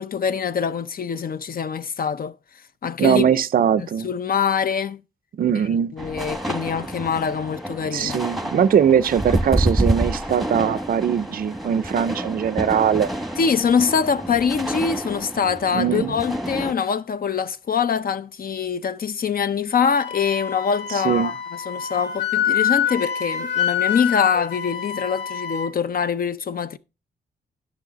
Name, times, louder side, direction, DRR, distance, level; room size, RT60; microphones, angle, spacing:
voice 1, 0.0-2.3 2.8-3.2 3.8-5.0 5.9-8.2 13.4-26.8, left 6 dB, 55° left, 0.6 m, -24 dB
voice 2, 3.0-4.1 5.3-5.9 7.8-13.1 15.7-16.1 21.0-21.3, right 8 dB, 55° right, 0.4 m, -21 dB
sound 1, 6.0-16.7, right 1 dB, ahead, 1.1 m, -28 dB
Wind instrument woodwind instrument, 19.9-25.7, left 9 dB, 80° left, 1.2 m, -26 dB
11.0 x 6.3 x 4.0 m
cardioid pair, 100°, 18 cm